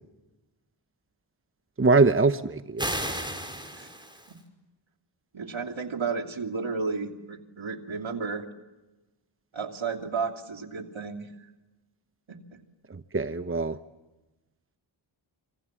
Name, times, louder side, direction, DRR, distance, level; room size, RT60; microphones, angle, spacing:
voice 1, 1.8-2.9 13.1-13.8, right 3 dB, 25° right, 10 dB, 1.0 m, -22 dB
sound 1, 2.8-4.4, right 1 dB, 10° right, 5.5 m, -33 dB
voice 2, 5.3-8.5 9.5-11.3 12.3-12.6, right 5 dB, 70° right, 4 dB, 2.9 m, -33 dB
27.0 x 25.0 x 7.5 m, 1.1 s
cardioid pair, 45°, 49 cm